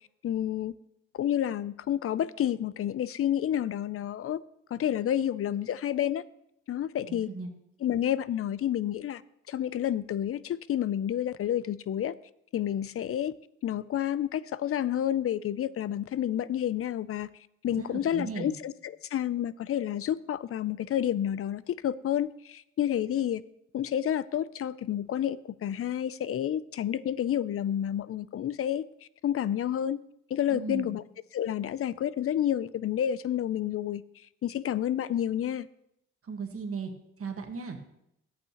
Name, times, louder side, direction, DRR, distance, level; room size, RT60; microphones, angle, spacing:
voice 1, 0.2-0.7 1.1-4.4 4.7-6.2 6.7-7.3 7.8-9.2 9.5-12.1 12.5-13.3 13.6-17.3 17.6-23.4 23.7-28.8 29.2-30.0 30.3-31.0 31.3-34.0 34.4-35.7, left 10 dB, 50° left, 18 dB, 0.4 m, -29 dB
voice 2, 7.1-7.5 17.6-18.5 30.5-30.9 36.2-36.9 37.2-37.8, right 5 dB, 50° right, 4 dB, 1.5 m, -37 dB
12.5 x 8.4 x 2.9 m, 0.78 s
cardioid pair, 85°, 30 cm